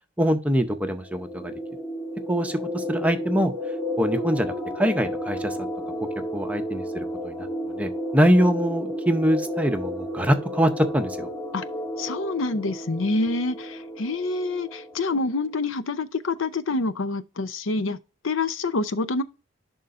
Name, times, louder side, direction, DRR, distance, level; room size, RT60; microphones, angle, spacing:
voice 1, 0.2-1.5 2.3-3.5 4.0-5.6 6.3-7.4 7.8-11.3, equal, 5° right, 0.6 m, -23 dB
sound 1, 1.0-15.3, equal, 15° left, 2.7 m, -32 dB
voice 2, 12.0-18.0 18.2-19.2, left 3 dB, 70° left, 0.6 m, -27 dB
11.0 x 3.8 x 2.5 m
head